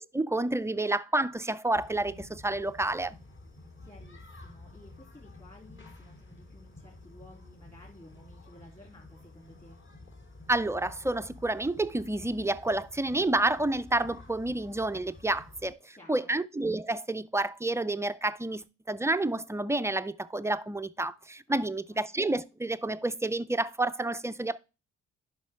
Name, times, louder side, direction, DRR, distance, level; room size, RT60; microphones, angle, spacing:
voice 1, 0.1-3.2 10.5-24.6, right 2 dB, 10° right, 0.4 m, -29 dB
sound 1, 1.7-15.7, left 2 dB, 40° left, 2.2 m, -50 dB
voice 2, 3.8-9.8 15.9-16.3 21.5-22.0, left 1 dB, 25° left, 2.9 m, -54 dB
11.0 x 5.4 x 3.4 m
cardioid pair, 90°, 30 cm